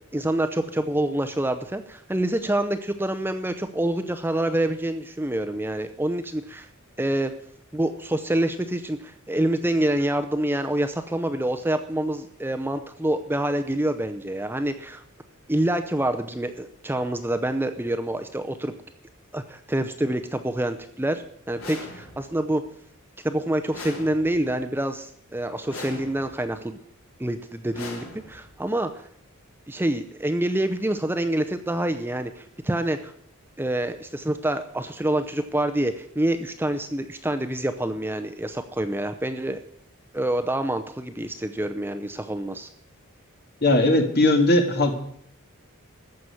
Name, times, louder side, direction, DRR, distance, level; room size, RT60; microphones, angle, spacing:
voice 1, 0.1-6.7 7.0-7.3 7.7-15.0 15.5-18.7 19.3-22.6 23.2-26.8 27.2-29.1 29.7-33.1 33.6-39.6 40.1-42.7, right 1 dB, 10° right, 8 dB, 0.6 m, -26 dB
sound 1, 21.6-22.4 23.7-24.6 25.7-26.5 27.7-28.6, left 2 dB, 70° left, 4.3 m, -40 dB
voice 2, 43.6-45.0, left 2 dB, 50° left, 4 dB, 2.2 m, -19 dB
14.5 x 6.0 x 9.7 m, 0.66 s
head